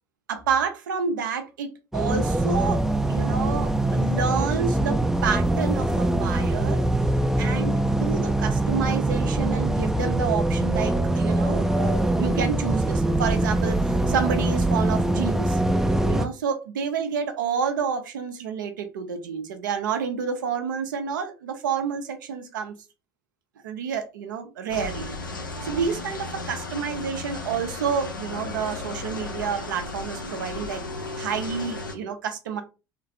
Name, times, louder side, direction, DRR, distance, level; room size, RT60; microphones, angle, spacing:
voice 1, 0.3-6.8 7.4-15.6 16.1-22.7 23.6-25.1 25.6-30.8 31.2-32.6, right 6 dB, 75° right, 0.5 m, -29 dB
sound 1, 1.9-16.3, right 1 dB, 5° right, 0.4 m, -23 dB
sound 2, 24.7-32.0, left 3 dB, 85° left, 0.5 m, -34 dB
2.9 x 2.3 x 2.6 m
figure-of-eight pair, 60°, 11 cm